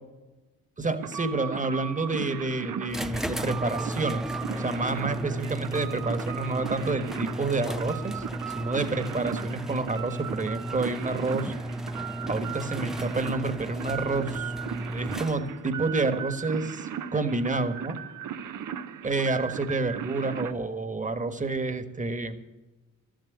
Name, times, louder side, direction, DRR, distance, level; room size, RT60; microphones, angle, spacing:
voice 1, 0.8-4.2 4.5-8.2 8.5-11.5 12.3-14.5 14.9-18.0 19.0-22.4, right 3 dB, 20° right, 10 dB, 1.6 m, -29 dB
sound 1, 1.0-20.5, right 8 dB, 60° right, 0.9 m, -37 dB
sound 2, 2.9-15.7, right 1 dB, ahead, 0.6 m, -34 dB
13.0 x 7.7 x 9.4 m, 1.1 s
supercardioid pair, 65°, 36 cm